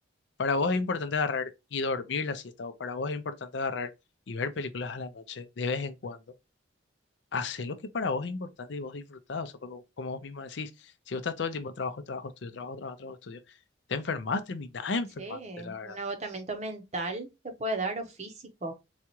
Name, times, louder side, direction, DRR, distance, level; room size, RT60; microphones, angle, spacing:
voice 1, 0.4-3.9 4.3-6.2 7.3-10.7 11.1-13.4 13.9-16.0, left 4 dB, 65° left, 0.5 m, -33 dB
voice 2, 15.2-18.7, right 2 dB, 35° right, 0.7 m, -35 dB
4.0 x 2.3 x 2.9 m
head